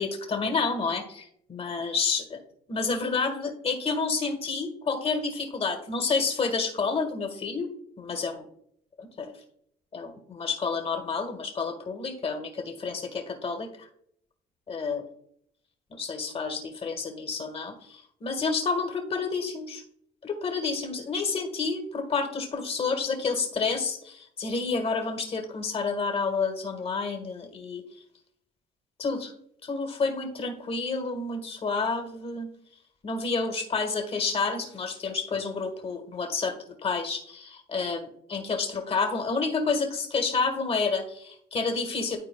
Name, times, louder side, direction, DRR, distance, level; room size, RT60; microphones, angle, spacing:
voice 1, 0.0-2.4 2.7-7.7 8.0-8.4 9.0-9.3 9.9-13.9 14.7-15.0 15.9-19.8 20.2-27.8 29.0-29.3 29.6-32.5 33.0-42.2, left 4 dB, 35° left, 5 dB, 1.6 m, -29 dB
12.5 x 4.2 x 2.3 m, 0.68 s
cardioid pair, 110°, 17 cm